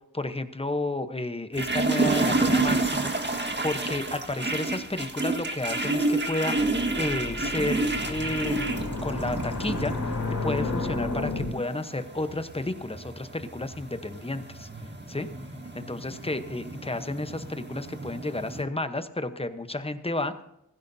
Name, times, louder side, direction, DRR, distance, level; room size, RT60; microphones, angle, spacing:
voice 1, 0.1-3.1 3.6-6.5 7.0-9.9 10.4-14.7 15.1-15.3 15.7-20.3, left 2 dB, 15° left, 10 dB, 1.0 m, -31 dB
sound 1, 1.5-18.6, right 2 dB, 30° right, 1.7 m, -30 dB
sound 2, 6.6-11.5, left 3 dB, 70° left, 4.2 m, -32 dB
16.0 x 15.5 x 2.8 m, 0.82 s
wide cardioid pair, 65°, 34 cm